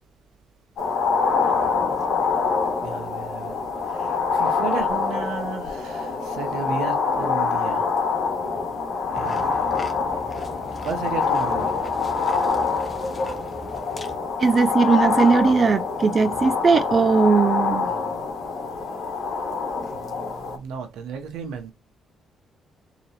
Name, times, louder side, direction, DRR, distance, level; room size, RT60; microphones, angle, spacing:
sound 1, 0.8-20.6, left 5 dB, 75° left, 1.2 m, -25 dB
voice 1, 2.8-3.6 3.8-7.9 9.1-9.8 10.8-11.7 17.9-18.3 19.9-21.7, right 6 dB, 90° right, 0.8 m, -34 dB
sound 2, 9.1-14.2, left 2 dB, 30° left, 0.9 m, -40 dB
voice 2, 14.4-17.9, right 5 dB, 40° right, 0.3 m, -19 dB
3.8 x 3.0 x 2.8 m
cardioid pair, 90°, 0 cm